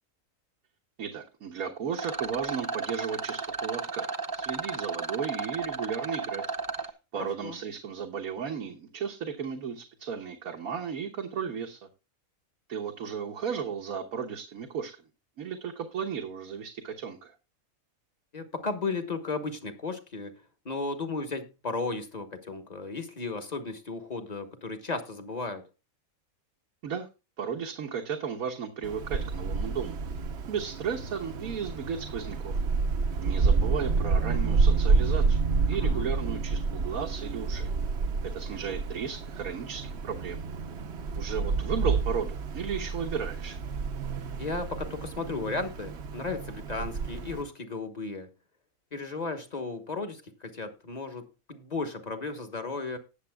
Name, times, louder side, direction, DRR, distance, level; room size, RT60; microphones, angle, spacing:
voice 1, 1.0-6.4 6.8-11.8 12.7-15.0 15.4-17.4 26.8-27.1 27.4-30.0 30.5-32.6 33.2-37.7 38.3-40.4 41.1-43.6, right 7 dB, 80° right, 1.5 m, -35 dB
Rattle, 1.9-6.9, right 4 dB, 30° right, 0.4 m, -34 dB
voice 2, 7.1-7.6 18.3-20.4 20.6-25.6 35.7-36.0 44.4-48.3 48.9-53.0, left 3 dB, 30° left, 1.2 m, -35 dB
Wind, 28.8-47.4, right 4 dB, 55° right, 1.0 m, -29 dB
18.5 x 7.1 x 2.3 m
omnidirectional pair, 1.5 m